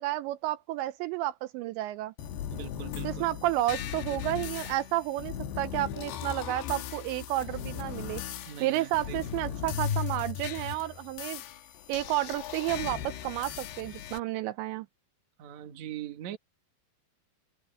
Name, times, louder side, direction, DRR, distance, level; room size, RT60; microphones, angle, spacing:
voice 1, 0.0-2.1 3.0-8.2 8.6-11.4 11.9-14.9, right 15 dB, 80° right, 2.8 m, -31 dB
sound 1, 2.2-14.2, left 9 dB, 70° left, 3.1 m, -37 dB
voice 2, 2.5-3.3 8.2-9.2 15.4-16.4, right 11 dB, 55° right, 2.3 m, -41 dB
omnidirectional pair, 5.3 m